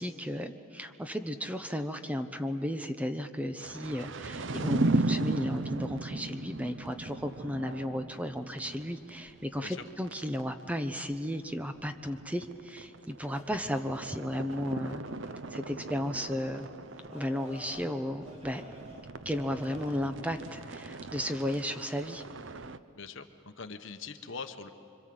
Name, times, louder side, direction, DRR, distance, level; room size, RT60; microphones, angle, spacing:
voice 1, 0.0-15.0 15.5-16.7 17.1-18.7 19.2-22.2, equal, 5° right, 8 dB, 0.8 m, -34 dB
sound 1, 3.6-10.4 10.7-10.8 11.0-11.1 11.4-22.8, right 2 dB, 60° right, 0.7 m, -37 dB
sound 2, 13.3-20.1, equal, 30° right, 3.6 m, -52 dB
voice 2, 22.9-24.7, left 5 dB, 65° left, 8 dB, 1.2 m, -42 dB
26.5 x 24.5 x 7.8 m, 2.5 s
head